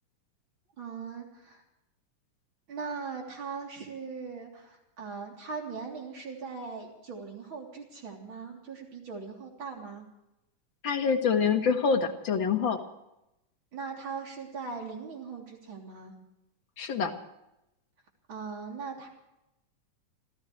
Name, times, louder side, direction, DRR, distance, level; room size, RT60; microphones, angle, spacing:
voice 1, 0.8-1.6 2.7-10.1 13.7-16.1 18.3-19.1, right 5 dB, 40° right, 0 dB, 3.9 m, -40 dB
voice 2, 10.8-12.8 16.8-17.1, left 6 dB, 45° left, 5 dB, 1.9 m, -26 dB
29.0 x 15.5 x 3.2 m, 0.88 s
omnidirectional pair, 3.7 m